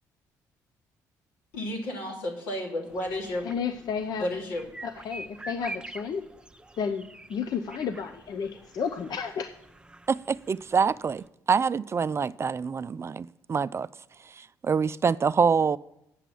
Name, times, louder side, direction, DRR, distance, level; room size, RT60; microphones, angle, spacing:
voice 1, 1.5-3.5 4.2-4.7, left 1 dB, 85° left, 2.6 m, -32 dB
sound 1, 2.9-11.3, right 2 dB, 10° right, 0.7 m, -46 dB
voice 2, 3.4-4.3 4.8-6.2 6.8-9.5, left 6 dB, 60° left, 0.7 m, -32 dB
voice 3, 10.1-13.9 14.4-15.8, right 5 dB, 35° right, 0.4 m, -26 dB
9.1 x 6.1 x 8.3 m
supercardioid pair, 65°, 8 cm